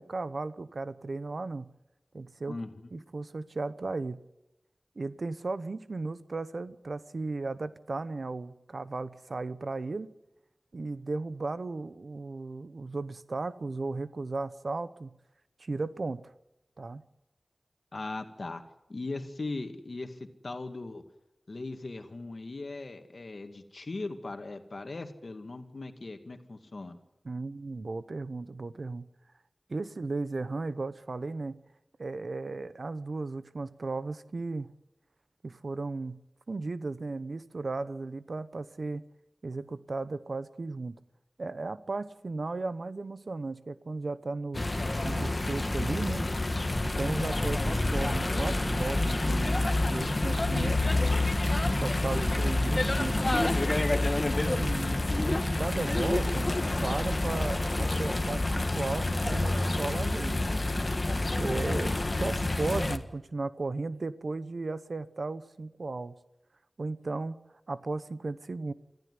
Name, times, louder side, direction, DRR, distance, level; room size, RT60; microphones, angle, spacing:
voice 1, 0.0-1.7 2.1-2.6 2.9-4.2 5.0-10.1 10.7-15.1 15.6-16.3 16.8-17.0 27.2-29.1 29.7-31.6 32.0-34.7 35.4-39.0 39.4-41.0 41.4-44.7 45.0-46.3 46.8-50.8 51.8-53.5 54.4-56.5 56.8-60.5 61.4-66.1 66.8-67.4 67.7-68.7, right 3 dB, 70° right, 14 dB, 0.9 m, -35 dB
voice 2, 2.5-2.9 17.9-18.6 18.9-21.0 21.5-27.0, left 3 dB, 65° left, 7 dB, 2.1 m, -39 dB
sound 1, 44.5-63.0, left 2 dB, 35° left, 1.5 m, -28 dB
26.0 x 14.5 x 9.6 m, 0.91 s
wide cardioid pair, 70°, 0 cm